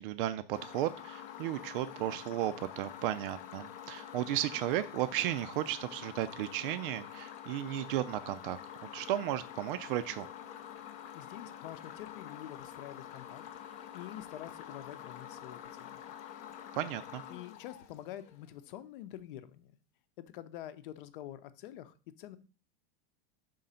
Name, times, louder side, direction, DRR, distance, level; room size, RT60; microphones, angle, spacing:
voice 1, 0.0-8.6 8.9-10.3 16.7-17.2, right 13 dB, 65° right, 12 dB, 0.5 m, -34 dB
sound 1, 0.5-18.5, left 10 dB, 25° left, 0.4 m, -47 dB
voice 2, 11.1-13.4 13.9-15.9 17.3-19.8 20.2-22.4, left 12 dB, 65° left, 12 dB, 0.7 m, -47 dB
5.0 x 3.8 x 5.5 m, 0.36 s
supercardioid pair, 175°, 29 cm